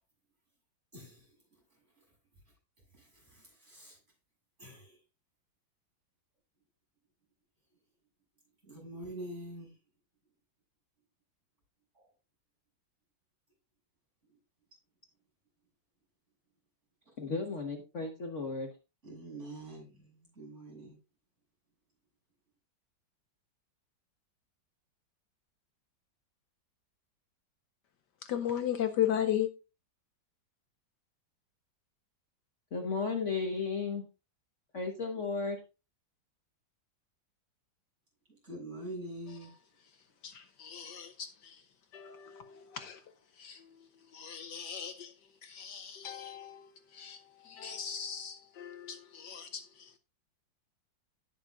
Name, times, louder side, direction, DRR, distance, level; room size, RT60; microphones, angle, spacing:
voice 1, 0.9-1.6 2.0-2.1 2.9-4.0 4.6-5.0 8.6-9.8 11.9-12.1 19.0-21.0 38.3-39.5, right 1 dB, 35° right, 7.5 m, -45 dB
voice 2, 17.2-18.7 32.7-34.0 34.7-35.6, left 4 dB, 45° left, 1.3 m, -34 dB
voice 3, 28.2-29.5 40.2-41.6 41.9-43.0 43.4-43.7 44.1-45.1 45.4-50.0, left 10 dB, 70° left, 1.3 m, -36 dB
17.5 x 6.5 x 2.4 m
omnidirectional pair, 2.0 m